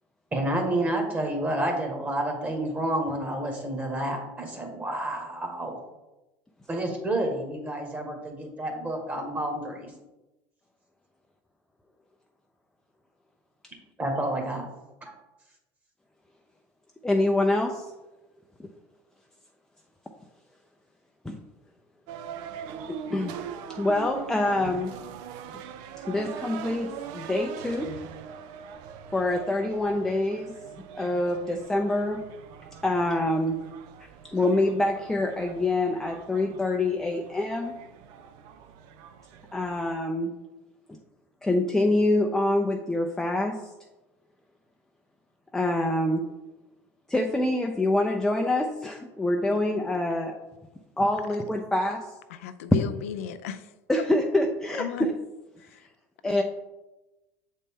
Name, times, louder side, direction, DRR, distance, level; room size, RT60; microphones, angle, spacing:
voice 1, 0.3-5.8 6.7-9.9 14.0-14.7 15.0-15.1, right 1 dB, 20° right, 1 dB, 1.7 m, -29 dB
voice 2, 17.0-17.9 21.2-21.4 22.9-24.9 26.0-27.9 29.1-30.6 30.9-32.2 32.8-33.6 34.2-37.7 39.5-40.3 41.4-43.6 45.5-46.3 47.1-50.4 51.0-52.1 53.9-55.1 56.2-56.4, left 1 dB, 5° left, 2 dB, 0.5 m, -26 dB
sound 1, 22.1-39.9, right 8 dB, 65° right, 0.5 m, -42 dB
voice 3, 52.3-53.7 54.8-55.1 55.6-55.8 56.2-56.4, left 10 dB, 85° left, 10 dB, 0.4 m, -35 dB
7.4 x 4.0 x 3.7 m, 1.0 s
supercardioid pair, 105°, 7 cm